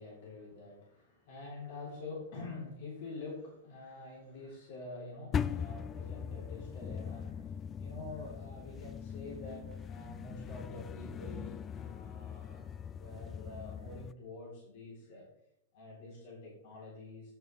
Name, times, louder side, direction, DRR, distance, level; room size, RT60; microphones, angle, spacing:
voice 1, 0.0-15.2 15.7-17.3, left 2 dB, 55° left, -4 dB, 3.6 m, -47 dB
sound 1, 5.3-14.1, left 7 dB, 25° left, 0.4 m, -40 dB
8.6 x 6.2 x 4.6 m, 0.77 s
figure-of-eight pair, 100°, 0 cm